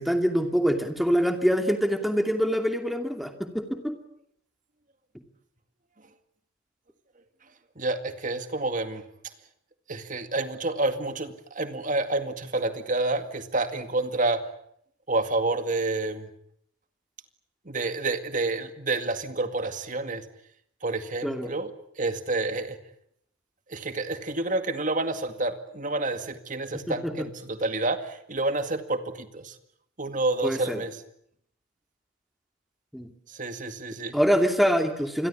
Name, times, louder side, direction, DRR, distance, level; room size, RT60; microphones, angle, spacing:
voice 1, 0.0-4.0 21.2-21.5 26.7-27.3 30.4-30.8 32.9-33.1 34.1-35.3, equal, ahead, 5 dB, 2.6 m, -25 dB
voice 2, 7.8-9.0 9.9-14.4 15.1-16.3 17.7-20.2 20.8-21.7 22.0-22.8 23.7-29.5 30.0-30.9 33.4-34.1, right 2 dB, 35° right, 8 dB, 2.1 m, -29 dB
27.5 x 22.0 x 8.5 m, 0.71 s
head